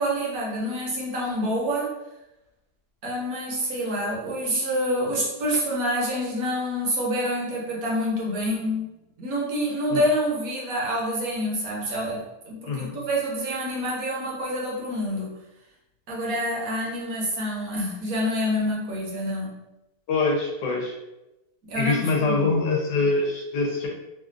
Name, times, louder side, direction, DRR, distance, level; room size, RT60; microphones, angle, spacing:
voice 1, 0.0-1.9 3.0-8.9 9.2-15.4 16.1-19.6 21.7-22.5, equal, 60° right, -4 dB, 1.2 m, -27 dB
voice 2, 20.1-21.0 21.7-23.9, left 3 dB, 80° left, -1 dB, 1.3 m, -24 dB
3.3 x 2.4 x 2.4 m, 0.95 s
omnidirectional pair, 1.8 m